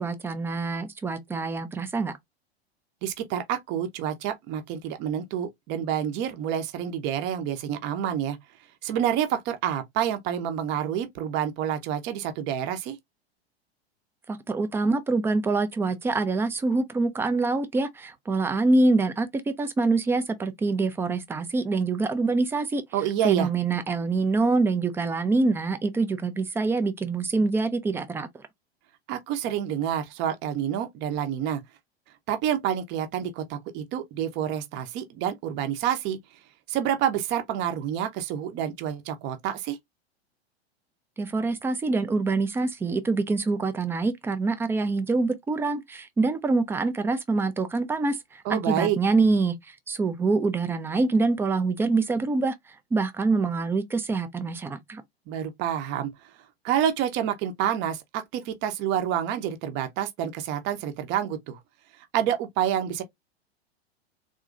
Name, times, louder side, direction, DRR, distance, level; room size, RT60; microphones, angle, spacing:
voice 1, 0.0-2.1 14.3-22.8 23.2-28.4 41.2-55.0, right 3 dB, 10° right, 0.4 m, -25 dB
voice 2, 3.0-8.4 8.8-13.0 22.9-23.5 29.1-31.6 32.3-36.2 36.7-39.8 48.4-49.0 55.3-56.1 56.6-61.6 62.1-63.0, right 10 dB, 35° right, 0.8 m, -28 dB
3.7 x 2.8 x 2.4 m
figure-of-eight pair, 95°, 32 cm